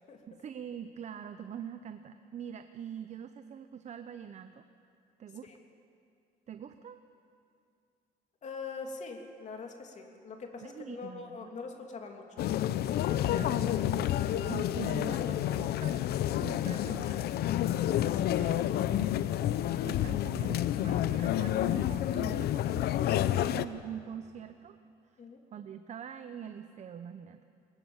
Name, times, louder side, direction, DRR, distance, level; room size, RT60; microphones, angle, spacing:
voice 1, 0.3-4.6 5.2-5.5 6.5-7.0 10.6-11.5 13.4-14.1 14.4-17.3 17.9-19.3 19.8-24.8 25.1-25.2 25.5-27.4, right 8 dB, 45° right, 9 dB, 0.8 m, -44 dB
voice 2, 8.4-12.4 25.2-25.4, left 4 dB, 45° left, 3 dB, 3.0 m, -43 dB
sound 1, 12.4-23.6, left 12 dB, 70° left, 0.7 m, -29 dB
21.5 x 20.0 x 7.3 m, 2.5 s
cardioid pair, 110°, 17 cm